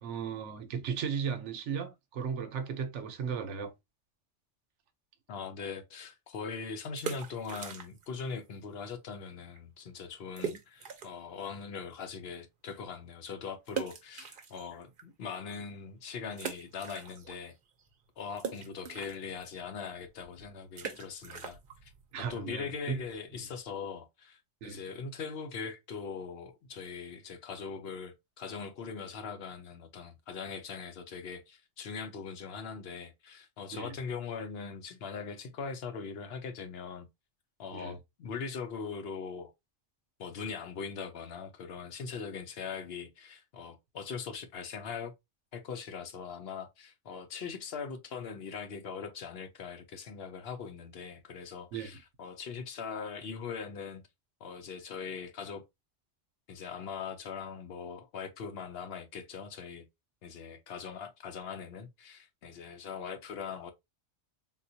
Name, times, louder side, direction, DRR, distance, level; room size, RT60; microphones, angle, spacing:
voice 1, 0.0-3.7 22.1-23.0 24.6-24.8 33.7-33.9 37.7-38.0 51.7-51.9, right 6 dB, 85° right, 1.0 m, -36 dB
voice 2, 5.3-17.5 18.2-21.9 22.2-37.1 37.6-39.5 40.2-45.1 45.5-54.0 54.4-55.6 56.5-59.8 60.2-63.7, left 6 dB, 65° left, 0.8 m, -41 dB
sound 1, 6.8-8.2 8.5-8.6 9.2-9.3 9.5-9.6 10.4-11.3 11.8-11.9 13.7-15.0 15.5-15.6 16.3-17.5 17.8-23.3, right 6 dB, 55° right, 0.7 m, -41 dB
3.8 x 2.3 x 2.6 m
omnidirectional pair, 1.2 m